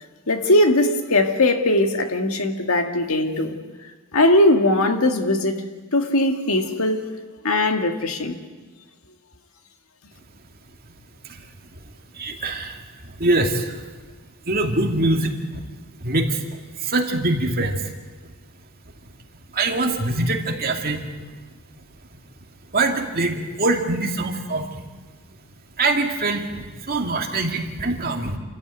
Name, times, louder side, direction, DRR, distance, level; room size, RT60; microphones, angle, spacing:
voice 1, 0.3-3.6 4.1-5.6 5.9-7.1 7.4-8.4, left 1 dB, 75° left, 2.0 m, -19 dB
voice 2, 12.1-13.8 14.5-15.6 16.0-16.4 16.8-17.9 19.5-21.1 22.7-24.8 25.8-28.4, right 2 dB, 45° right, 2.4 m, -23 dB
28.5 x 14.5 x 9.2 m
head